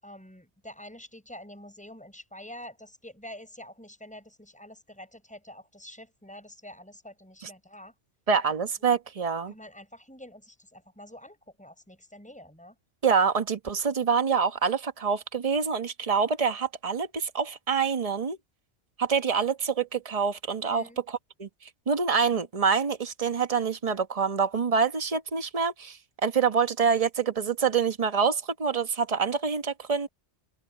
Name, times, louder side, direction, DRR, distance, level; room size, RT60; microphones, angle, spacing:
voice 1, 0.0-7.9 8.8-8.9 9.5-12.8 20.7-21.0, left 1 dB, 5° left, 7.3 m, -47 dB
voice 2, 8.3-9.5 13.0-18.4 19.0-21.5 21.9-30.1, right 6 dB, 35° right, 1.2 m, -26 dB
omnidirectional pair, 1.1 m